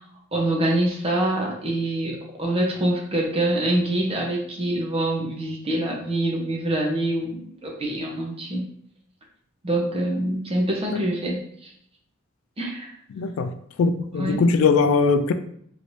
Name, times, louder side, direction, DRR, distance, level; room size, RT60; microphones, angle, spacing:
voice 1, 0.3-8.6 9.6-11.7 12.6-12.9 14.1-14.4, right 1 dB, 30° right, -1 dB, 0.7 m, -25 dB
voice 2, 13.1-13.5 13.8-15.3, left 4 dB, 75° left, 10 dB, 0.3 m, -20 dB
3.1 x 3.1 x 2.6 m, 0.67 s
head